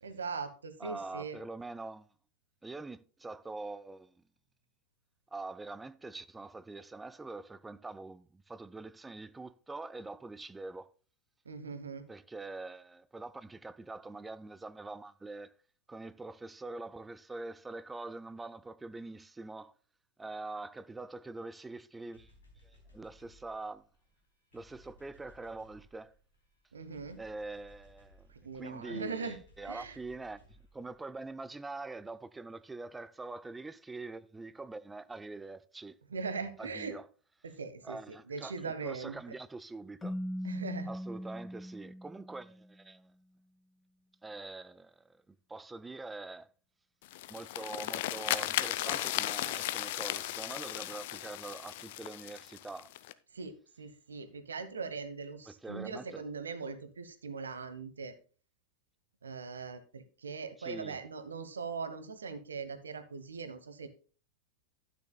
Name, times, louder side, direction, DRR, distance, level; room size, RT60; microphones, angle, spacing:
voice 1, 0.0-1.4 11.4-12.1 26.7-27.2 28.4-29.4 29.6-30.0 36.1-37.0 37.4-38.0 38.3-39.2 40.4-40.9 53.3-58.1 59.2-63.9, right 4 dB, 70° right, 1.1 m, -40 dB
voice 2, 0.8-2.1 2.6-4.2 5.3-10.9 12.1-15.5 15.9-19.7 20.2-22.3 22.6-23.8 24.5-26.1 27.2-28.3 28.5-36.0 36.6-37.1 37.8-40.2 40.9-43.0 44.2-46.5 47.3-52.9 55.5-56.2 60.6-61.0, right 3 dB, 10° right, 0.5 m, -44 dB
sound 1, 22.1-31.7, left 1 dB, 70° left, 3.9 m, -62 dB
Keyboard (musical), 40.0-42.7, equal, 10° left, 1.0 m, -40 dB
sound 2, 47.0-53.1, left 15 dB, 50° left, 0.5 m, -36 dB
12.0 x 9.6 x 2.2 m
figure-of-eight pair, 90°, 0 cm